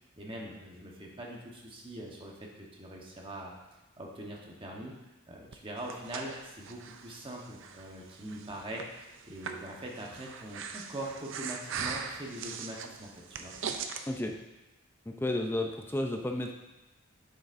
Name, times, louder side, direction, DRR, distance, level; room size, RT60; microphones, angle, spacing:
voice 1, 0.2-3.5 4.0-5.0 5.3-13.1 13.4-13.5, right 1 dB, 25° right, -1 dB, 1.0 m, -42 dB
Breathing, 5.5-14.0, right 6 dB, 60° right, 0.5 m, -41 dB
voice 2, 14.1-14.4 15.1-16.5, left 1 dB, 10° left, 3 dB, 0.4 m, -32 dB
8.0 x 6.6 x 2.5 m, 1.0 s
head